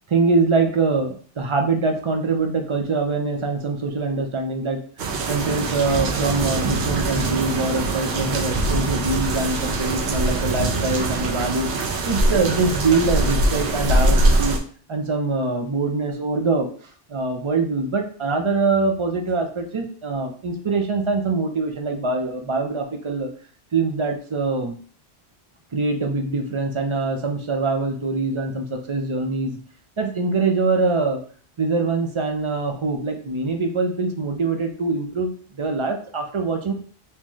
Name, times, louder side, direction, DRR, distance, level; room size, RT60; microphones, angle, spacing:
voice 1, 0.1-4.8 5.3-11.7 12.1-14.6 14.9-16.7 17.1-23.3 23.7-24.8 25.7-29.6 30.0-31.2 31.6-36.7, right 3 dB, 40° right, 4 dB, 0.4 m, -23 dB
sound 1, 5.0-14.6, right 2 dB, 85° right, 0.9 m, -22 dB
3.7 x 2.8 x 3.0 m, 0.44 s
omnidirectional pair, 1.1 m